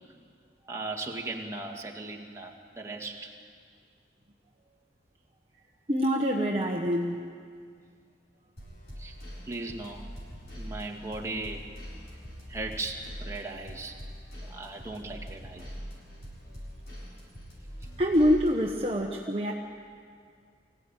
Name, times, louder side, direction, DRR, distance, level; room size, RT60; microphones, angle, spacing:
voice 1, 0.7-3.3 6.4-6.5 9.0-9.2 9.4-10.0 10.6-11.6 12.5-14.0 14.5-15.6, right 2 dB, 15° right, 0 dB, 1.9 m, -37 dB
voice 2, 5.9-7.2 18.0-19.5, equal, 30° right, 0 dB, 1.1 m, -25 dB
sound 1, 8.6-18.8, equal, 60° left, 7.4 m, -43 dB
24.5 x 16.5 x 9.1 m, 2.1 s
head